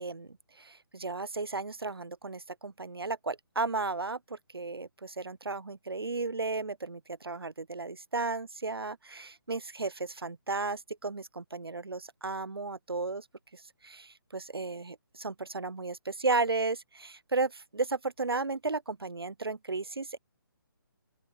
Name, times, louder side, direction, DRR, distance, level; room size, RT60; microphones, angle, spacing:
voice 1, 0.0-13.2 13.5-20.2, right 3 dB, 85° right, 0.8 m, -34 dB
open air
figure-of-eight pair, 145°, 12 cm